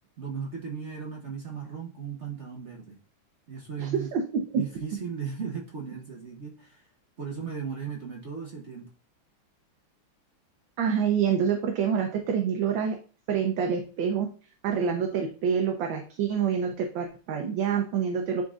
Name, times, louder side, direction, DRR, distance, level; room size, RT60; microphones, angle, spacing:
voice 1, 0.2-3.0 3.5-4.1 4.5-6.9 7.2-8.9, right 6 dB, 50° right, -1 dB, 0.9 m, -36 dB
voice 2, 3.8-4.2 4.5-4.6 10.8-12.9 13.3-14.3 14.6-18.4, right 7 dB, 75° right, 3 dB, 1.5 m, -26 dB
11.0 x 3.7 x 2.4 m, 0.37 s
omnidirectional pair, 2.2 m